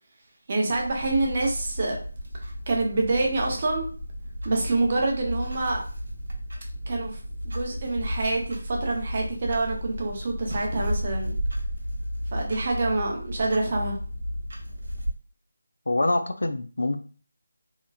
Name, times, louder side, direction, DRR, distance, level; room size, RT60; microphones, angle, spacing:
voice 1, 0.5-2.0 2.4-3.9 4.4-5.8 6.9-7.2 7.5-11.4 12.3-14.0, right 2 dB, 30° right, 0 dB, 0.5 m, -26 dB
Clock, 0.7-15.2, equal, 60° right, 0.8 m, -33 dB
voice 2, 15.9-17.0, left 2 dB, 80° left, 8 dB, 0.4 m, -25 dB
2.8 x 2.5 x 2.3 m, 0.40 s
figure-of-eight pair, 175°, 0 cm